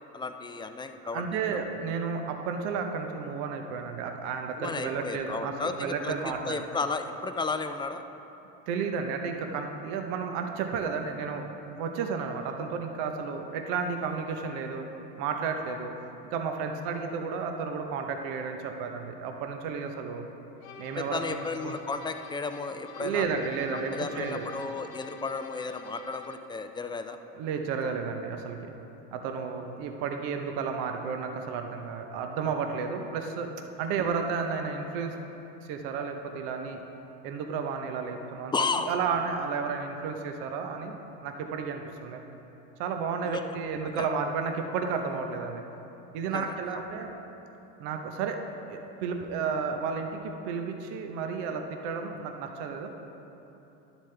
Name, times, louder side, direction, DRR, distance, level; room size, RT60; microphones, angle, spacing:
voice 1, 0.1-1.2 4.5-6.2 6.4-8.0 21.0-23.3 23.9-27.2 38.5-38.9 43.2-43.4 44.0-44.1 46.3-46.9, left 4 dB, 10° left, 8 dB, 0.4 m, -33 dB
voice 2, 1.1-6.6 8.7-14.9 15.2-15.9 16.3-20.2 20.8-21.2 21.6-21.8 23.0-24.5 27.3-28.7 29.1-33.5 33.8-35.1 35.7-36.8 37.2-41.0 41.2-42.2 42.8-45.6 46.1-47.1 47.8-48.4 48.7-52.9, right 5 dB, 70° right, 4 dB, 0.9 m, -32 dB
sound 1, 20.6-26.5, left 6 dB, 75° left, 1.0 m, -48 dB
11.0 x 7.2 x 3.3 m, 3.0 s
supercardioid pair, 85°, 40 cm